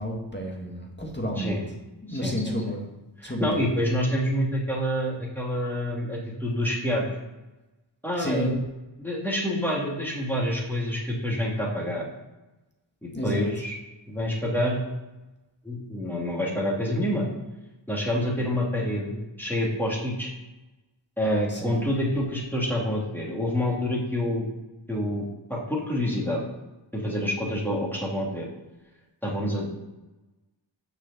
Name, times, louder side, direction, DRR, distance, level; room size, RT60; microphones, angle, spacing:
voice 1, 0.0-1.6 2.1-2.9 3.2-3.7 8.2-8.5 13.1-13.5 21.5-21.8, equal, 25° left, -1 dB, 1.8 m, -30 dB
voice 2, 2.1-2.5 3.2-7.1 8.0-8.6 9.0-12.1 13.0-13.8 14.1-14.8 15.6-17.3 17.9-20.3 21.2-24.5 24.9-26.5 26.9-28.5 29.2-29.7, equal, 5° left, -5 dB, 3.0 m, -27 dB
6.8 x 6.2 x 7.2 m, 1.0 s
wide cardioid pair, 50°, 46 cm